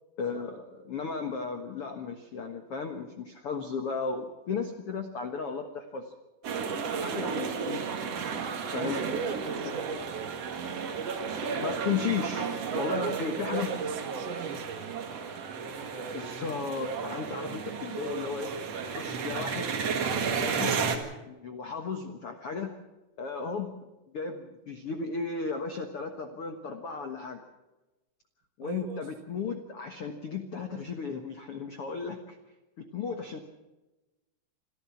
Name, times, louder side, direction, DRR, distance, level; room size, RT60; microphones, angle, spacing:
voice 1, 0.2-6.1 7.0-8.1 8.7-9.3 11.6-13.7 16.1-18.5 18.9-19.7 20.3-22.7 23.2-23.8 24.1-27.4 28.6-32.4 32.8-33.4, left 5 dB, 80° left, 5 dB, 1.3 m, -35 dB
sound 1, 6.4-21.0, right 5 dB, 50° right, 2.2 m, -33 dB
voice 2, 8.7-10.3 12.7-15.0 28.6-29.1, right 6 dB, 90° right, 7 dB, 3.9 m, -39 dB
27.0 x 13.5 x 7.2 m, 1.1 s
omnidirectional pair, 5.0 m